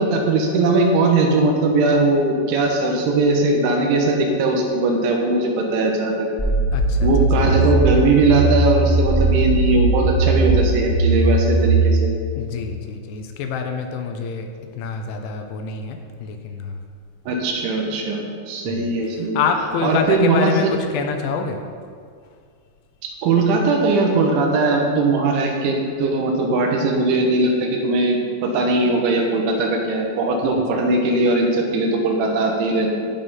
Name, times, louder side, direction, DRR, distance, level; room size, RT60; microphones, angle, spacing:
voice 1, 0.0-6.3 7.0-12.1 17.3-19.4 19.8-20.5 23.0-32.9, right 2 dB, 75° right, 1 dB, 3.5 m, -19 dB
sound 1, 6.4-11.8, right 3 dB, 5° left, 1.5 m, -18 dB
voice 2, 6.7-7.6 12.4-14.5 14.8-16.8 18.7-18.9 19.4-21.6, left 5 dB, 80° left, 5 dB, 3.0 m, -26 dB
16.0 x 5.7 x 5.7 m, 2.1 s
omnidirectional pair, 5.7 m